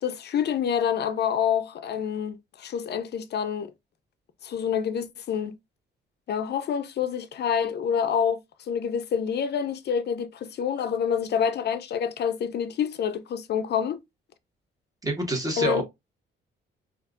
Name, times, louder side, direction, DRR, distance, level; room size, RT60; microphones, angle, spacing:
voice 1, 0.0-3.7 4.4-5.5 6.3-8.4 8.7-14.0 15.6-15.8, left 8 dB, 60° left, 0.7 m, -27 dB
voice 2, 15.0-15.8, right 2 dB, 20° right, 1.7 m, -27 dB
4.3 x 2.6 x 2.5 m
cardioid pair, 90°, 20 cm